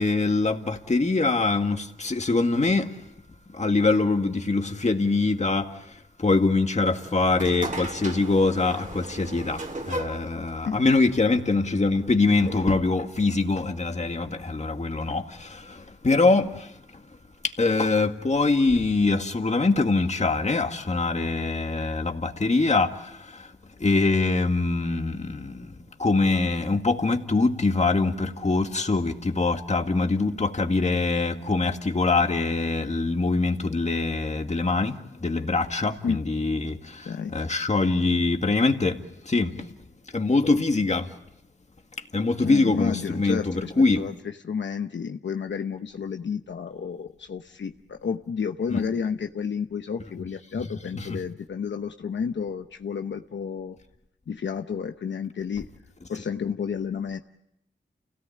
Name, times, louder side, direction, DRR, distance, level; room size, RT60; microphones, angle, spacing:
voice 1, 0.0-2.9 3.5-5.7 6.2-16.7 17.6-23.4 23.8-25.7 26.0-39.5 40.1-41.1 42.1-44.0 48.7-48.8 50.9-51.1, left 3 dB, 35° left, 2.0 m, -24 dB
sound 1, 6.9-12.2, right 1 dB, 40° right, 2.4 m, -37 dB
voice 2, 42.4-44.1 44.4-53.8 54.3-55.7 56.1-57.2, left 6 dB, 75° left, 1.0 m, -31 dB
29.5 x 17.5 x 8.7 m
cardioid pair, 60°, 19 cm